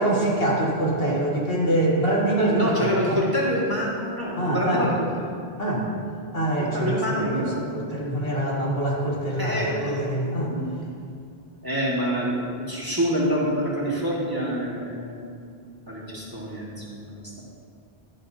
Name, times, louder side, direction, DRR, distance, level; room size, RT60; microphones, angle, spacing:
voice 1, 0.0-3.2 4.4-4.8 5.6-5.9 6.3-7.0 7.9-10.5, right 1 dB, 65° left, -5 dB, 2.3 m, -24 dB
voice 2, 2.3-5.2 6.7-8.1 9.4-10.0 10.5-10.8 11.6-15.3 15.9-17.1, equal, 20° right, -6 dB, 1.9 m, -27 dB
11.5 x 11.5 x 2.8 m, 2.3 s
omnidirectional pair, 1.1 m